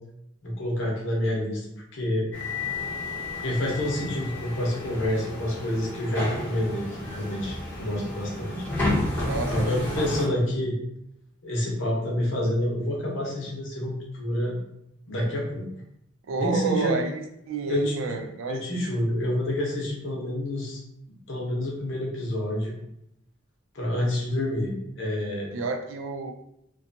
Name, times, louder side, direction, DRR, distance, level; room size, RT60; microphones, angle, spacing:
voice 1, 0.4-1.6 1.9-2.3 3.4-8.6 9.1-10.7 11.4-14.5 15.1-15.6 16.4-17.0 17.6-17.9 18.5-20.8 21.3-22.7 23.7-25.5, left 1 dB, 65° left, -2 dB, 0.8 m, -28 dB
sound 1, 2.3-10.3, left 2 dB, 10° left, 0.6 m, -31 dB
voice 2, 9.2-9.8 16.3-18.6 25.5-26.3, right 4 dB, 75° right, 5 dB, 0.3 m, -30 dB
2.6 x 2.3 x 2.5 m, 0.79 s
head